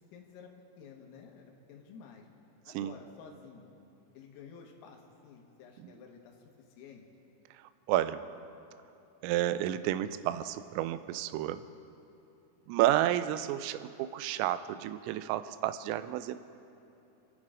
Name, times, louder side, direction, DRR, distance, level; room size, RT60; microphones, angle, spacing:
voice 1, 0.0-2.3 2.7-3.8 4.2-6.4 6.8-7.1 12.6-12.8, left 6 dB, 90° left, 1 dB, 4.0 m, -52 dB
voice 2, 7.9-8.2 9.2-11.6 12.7-16.4, right 13 dB, 90° right, 12 dB, 3.2 m, -31 dB
27.5 x 9.7 x 5.0 m, 2.7 s
omnidirectional pair, 5.8 m